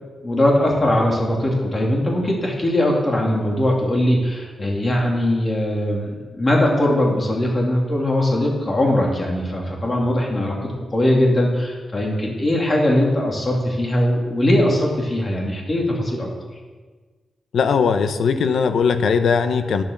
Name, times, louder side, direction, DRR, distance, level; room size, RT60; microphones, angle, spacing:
voice 1, 0.2-16.3, left 1 dB, 30° left, -1 dB, 2.6 m, -20 dB
voice 2, 17.5-19.8, left 6 dB, 80° left, 9 dB, 0.8 m, -19 dB
10.5 x 7.1 x 6.6 m, 1.4 s
wide cardioid pair, 125°, 0 cm